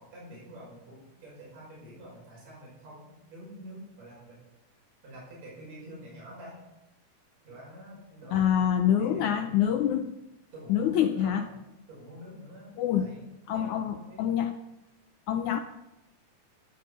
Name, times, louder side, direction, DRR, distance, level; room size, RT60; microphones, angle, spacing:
voice 1, 0.0-4.4 5.0-6.6 7.4-9.8 10.5-11.5 11.9-13.3 13.5-14.4, equal, 45° right, -5 dB, 7.1 m, -47 dB
voice 2, 8.3-10.1 10.7-11.4 12.8-13.1 13.5-14.5 15.3-15.6, left 9 dB, 85° left, 8 dB, 1.7 m, -26 dB
14.5 x 11.5 x 5.5 m, 0.95 s
omnidirectional pair, 4.2 m